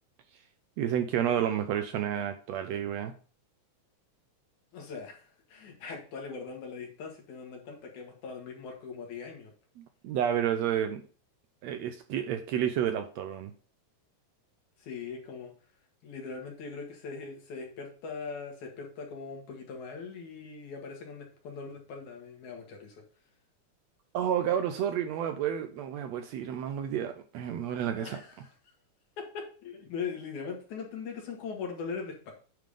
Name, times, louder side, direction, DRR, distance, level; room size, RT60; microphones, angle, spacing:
voice 1, 0.8-3.1 9.8-11.0 11.6-13.5 24.1-28.2, right 9 dB, 75° right, 8 dB, 1.7 m, -30 dB
voice 2, 4.7-9.5 14.8-15.5 16.0-23.0 27.9-28.5 29.2-32.3, left 5 dB, 75° left, 1 dB, 3.2 m, -40 dB
9.2 x 3.8 x 5.0 m, 0.38 s
omnidirectional pair, 3.5 m